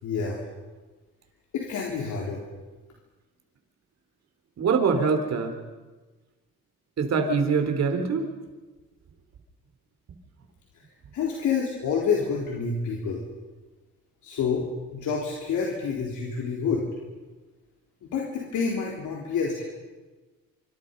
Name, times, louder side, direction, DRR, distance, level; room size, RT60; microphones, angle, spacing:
voice 1, 0.0-0.4 1.5-2.4 11.1-13.2 14.2-14.6 14.9-16.8 18.0-19.6, left 5 dB, 75° left, -2 dB, 4.1 m, -28 dB
voice 2, 4.6-5.5 7.0-8.3, right 5 dB, 60° right, 6 dB, 4.0 m, -23 dB
26.0 x 25.0 x 5.5 m, 1.3 s
cardioid pair, 90°, 30 cm